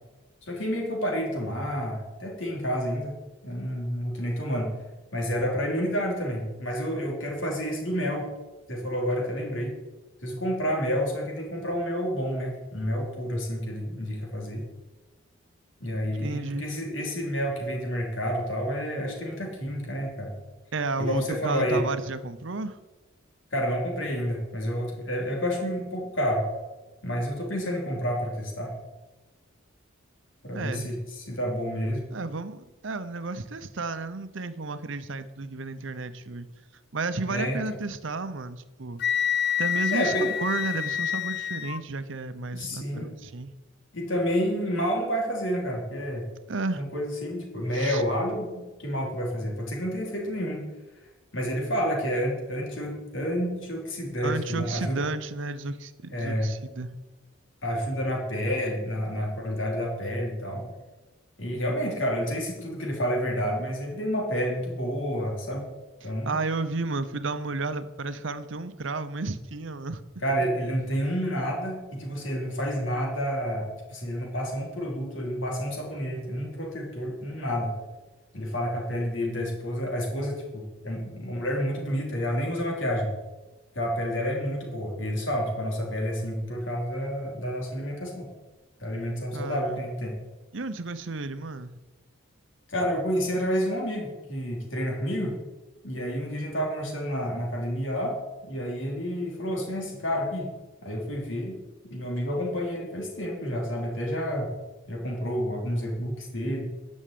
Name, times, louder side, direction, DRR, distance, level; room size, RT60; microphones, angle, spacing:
voice 1, 0.4-3.2 3.4-4.7 5.1-8.3 8.7-9.8 10.2-14.6 15.8-20.3 21.0-21.8 23.5-26.5 27.0-28.7 30.4-32.1 37.3-37.6 39.9-40.3 42.5-43.1 43.9-46.3 46.7-50.6 51.3-55.0 56.1-56.5 57.6-60.7 61.4-65.7 66.0-66.4 70.2-77.8 78.3-83.1 83.8-88.3 88.8-90.2 92.7-95.4 95.8-98.2 98.4-100.5 100.8-101.6 101.8-104.5 104.9-106.7, equal, 70° left, 0 dB, 3.6 m, -29 dB
voice 2, 16.0-16.6 20.7-22.8 30.5-30.9 32.1-36.5 36.9-39.0 39.6-43.5 46.5-46.8 47.7-48.0 54.2-57.0 66.0-70.0 89.3-89.8 90.5-91.7, right 3 dB, 70° right, 12 dB, 0.8 m, -32 dB
Wind instrument woodwind instrument, 39.0-41.8, left 9 dB, 50° left, 0.5 m, -27 dB
11.0 x 6.4 x 8.5 m, 1.1 s
head